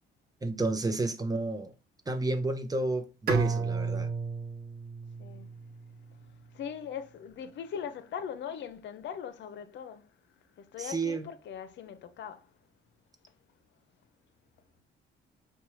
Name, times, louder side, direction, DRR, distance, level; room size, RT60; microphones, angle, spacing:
voice 1, 0.4-1.7 2.1-4.1 10.9-11.2, right 2 dB, 20° right, 0.7 m, -31 dB
Bowed string instrument, 3.3-6.3, right 4 dB, 50° right, 0.8 m, -33 dB
voice 2, 5.2-10.1 10.6-12.5, left 8 dB, 65° left, 0.6 m, -41 dB
5.2 x 2.2 x 3.0 m
cardioid pair, 90°, 20 cm